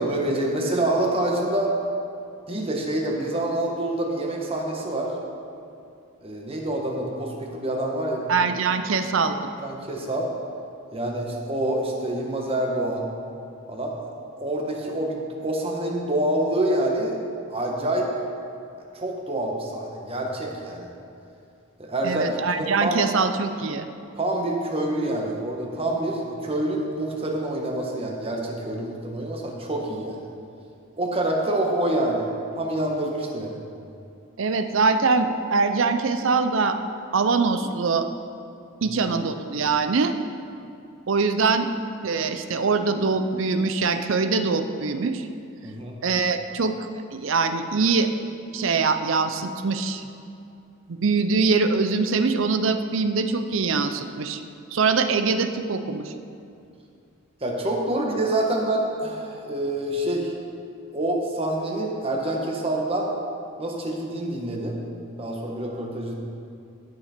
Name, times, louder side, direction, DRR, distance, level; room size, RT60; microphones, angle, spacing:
voice 1, 0.0-1.7 2.5-5.2 6.2-8.3 9.6-10.3 10.9-13.1 13.7-14.1 14.4-17.2 17.5-18.1 18.9-20.9 21.8-22.9 24.2-30.3 31.0-32.3 32.6-33.6 38.8-39.0 45.6-45.9 57.4-60.3 60.9-63.1 63.6-64.8 65.2-66.1, right 1 dB, 30° right, 0 dB, 1.3 m, -26 dB
voice 2, 8.3-9.5 22.0-23.9 34.4-36.8 37.1-38.1 38.8-40.1 41.1-41.7 42.0-45.3 46.0-46.7 47.1-48.1 48.5-50.0 50.9-54.4 54.7-56.1, right 4 dB, 70° right, 9 dB, 0.6 m, -23 dB
16.0 x 5.8 x 4.4 m, 2.5 s
head